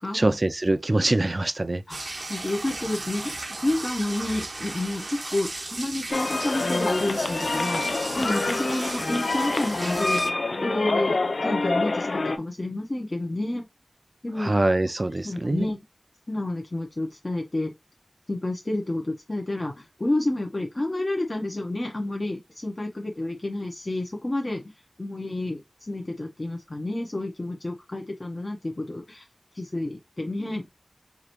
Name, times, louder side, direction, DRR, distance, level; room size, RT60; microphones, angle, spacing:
voice 1, 0.1-1.8 14.4-15.7, right 2 dB, 45° right, 0.4 m, -24 dB
voice 2, 1.9-13.7 14.2-14.5 15.2-15.8 16.3-17.7 18.3-24.6 25.0-29.3 29.5-30.7, left 1 dB, 45° left, 0.9 m, -30 dB
sound 1, 1.9-10.3, right 2 dB, 75° right, 0.8 m, -36 dB
sound 2, 6.1-12.4, left 3 dB, 85° left, 0.4 m, -26 dB
4.8 x 2.6 x 3.0 m
wide cardioid pair, 50°, 0 cm